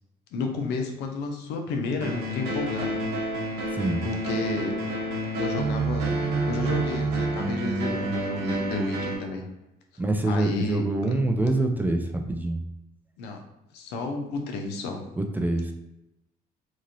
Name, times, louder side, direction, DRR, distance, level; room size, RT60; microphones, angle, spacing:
voice 1, 0.3-3.0 4.0-4.7 5.4-6.1 6.5-9.4 10.2-10.8 13.2-13.4 13.7-15.1, left 3 dB, 85° left, 3 dB, 0.6 m, -31 dB
sound 1, 2.0-9.2, right 2 dB, 80° right, 0.8 m, -28 dB
voice 2, 10.0-12.6 15.2-15.7, right 2 dB, 10° right, 4 dB, 0.3 m, -25 dB
3.0 x 2.5 x 2.6 m, 0.90 s
cardioid pair, 110°, 17 cm